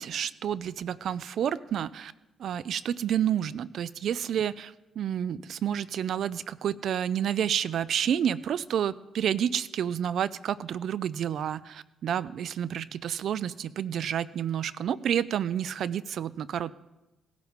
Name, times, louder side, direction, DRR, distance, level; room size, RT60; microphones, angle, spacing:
voice 1, 0.0-2.1 2.4-16.7, right 9 dB, 65° right, 18 dB, 0.4 m, -29 dB
18.0 x 10.5 x 3.6 m, 1.0 s
cardioid pair, 90°, 0 cm